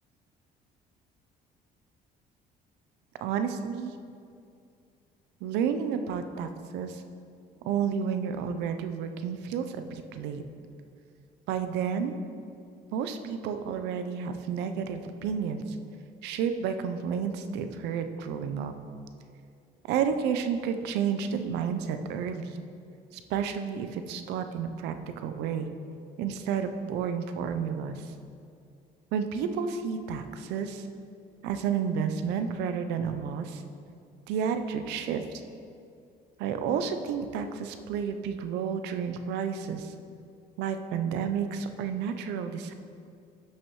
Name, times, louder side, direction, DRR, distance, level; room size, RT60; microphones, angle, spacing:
voice 1, 3.2-3.9 5.4-7.0 7.6-10.4 11.5-12.1 12.9-15.8 16.2-18.7 19.9-22.6 23.1-25.7 26.2-28.1 29.1-30.8 31.4-33.6 34.3-35.4 36.4-39.9 40.6-42.7, right 7 dB, 90° right, 8 dB, 0.6 m, -31 dB
11.5 x 6.2 x 3.1 m, 2.4 s
cardioid pair, 110°, 17 cm